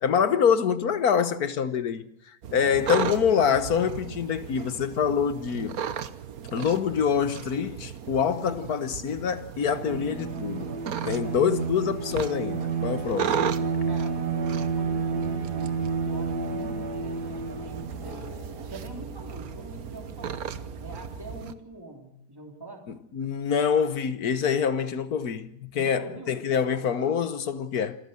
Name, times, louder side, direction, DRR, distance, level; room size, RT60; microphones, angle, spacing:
voice 1, 0.0-2.1 2.5-5.8 6.5-10.7 11.1-13.4 23.1-28.0, left 7 dB, 70° left, 1.7 m, -25 dB
sound 1, 2.4-21.5, right 8 dB, 70° right, 1.4 m, -36 dB
voice 2, 2.5-3.3 8.4-8.7 9.7-10.0 11.0-11.4 13.8-18.3 18.7-20.4 20.8-22.9 25.7-26.4, right 1 dB, 15° right, 3.2 m, -43 dB
Bowed string instrument, 9.7-18.2, right 5 dB, 85° right, 2.2 m, -30 dB
sound 2, 14.6-21.4, right 2 dB, 35° right, 4.7 m, -44 dB
27.0 x 14.0 x 7.8 m
omnidirectional pair, 1.7 m